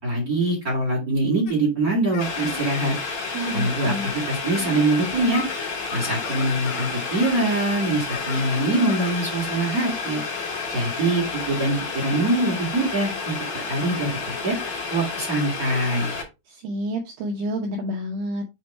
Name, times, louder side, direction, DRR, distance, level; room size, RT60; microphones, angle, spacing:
voice 1, 0.0-2.9 3.5-5.4 5.9-10.2 10.7-14.6 14.9-16.1, right 2 dB, 35° right, -3 dB, 1.5 m, -24 dB
sound 1, 1.5-1.6 2.1-2.8 3.5-3.6 4.4-4.8 5.1-7.5 8.1-9.2, left 8 dB, 80° left, 3.8 m, -37 dB
Boiling, 2.2-16.2, left 4 dB, 45° left, 2.4 m, -30 dB
voice 2, 3.3-4.1 16.5-18.4, equal, 85° right, 2 dB, 2.3 m, -29 dB
8.0 x 3.2 x 4.5 m, 0.24 s
omnidirectional pair, 5.9 m